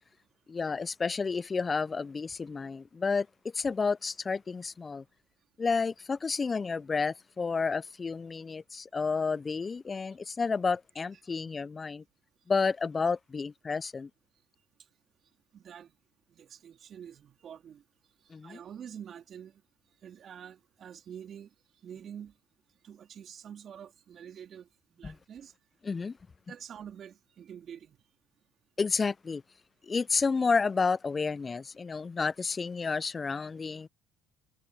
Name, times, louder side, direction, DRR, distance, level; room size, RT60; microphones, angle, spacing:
voice 1, 0.5-3.3 3.5-5.0 5.6-12.0 12.5-14.1 18.3-18.6 25.0-25.2 25.8-26.2 28.8-29.4 29.8-33.9, left 4 dB, 30° left, 0.7 m, -30 dB
voice 2, 15.5-15.9 16.3-17.8 18.2-19.6 20.0-21.5 21.8-22.3 22.8-25.5 26.5-28.0, right 8 dB, 50° right, 3.7 m, -47 dB
hypercardioid pair, 60°, 0 cm